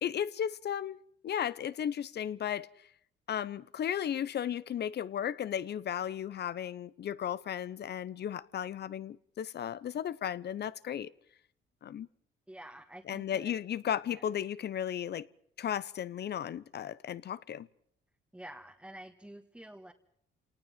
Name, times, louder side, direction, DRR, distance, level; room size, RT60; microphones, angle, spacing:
voice 1, 0.0-2.7 3.3-11.1 11.8-12.1 13.1-15.3 15.6-17.7, left 9 dB, 55° left, 0.9 m, -35 dB
voice 2, 12.5-13.5 14.1-14.2 18.3-19.9, right 1 dB, 5° right, 1.7 m, -49 dB
28.0 x 19.0 x 7.5 m
cardioid pair, 90°, 20 cm